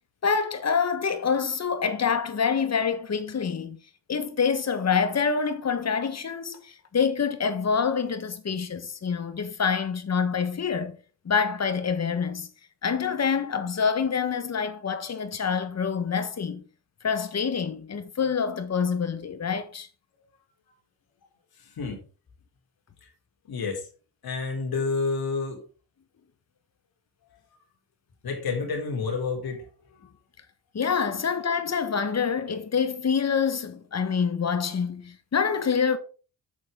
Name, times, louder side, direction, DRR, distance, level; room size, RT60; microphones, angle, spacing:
voice 1, 0.2-3.8 4.1-11.0 11.2-12.5 12.8-16.6 17.0-19.9 30.7-36.0, left 6 dB, 40° left, 1.5 m, -26 dB
voice 2, 23.5-23.8 24.2-25.6 28.2-29.7, left 4 dB, 60° left, 3.9 m, -29 dB
8.6 x 6.5 x 3.8 m
cardioid pair, 85°, 41 cm